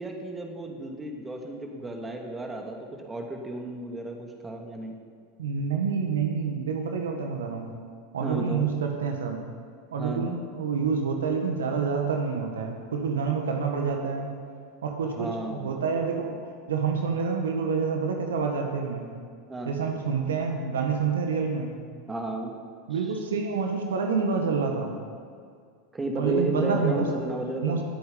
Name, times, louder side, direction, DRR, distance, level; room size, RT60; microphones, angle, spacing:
voice 1, 0.0-4.9 8.2-8.7 9.9-10.3 15.2-15.9 19.5-19.7 22.1-22.5 22.9-23.2 25.9-27.8, right 2 dB, 15° right, 2 dB, 2.4 m, -33 dB
voice 2, 5.4-7.7 8.1-9.4 9.9-14.3 14.8-16.4 16.7-19.1 19.6-21.7 22.9-24.9 26.1-27.1 27.6-27.8, right 5 dB, 80° right, 3 dB, 1.6 m, -27 dB
20.0 x 8.6 x 5.3 m, 2.2 s
hypercardioid pair, 90°, 0 cm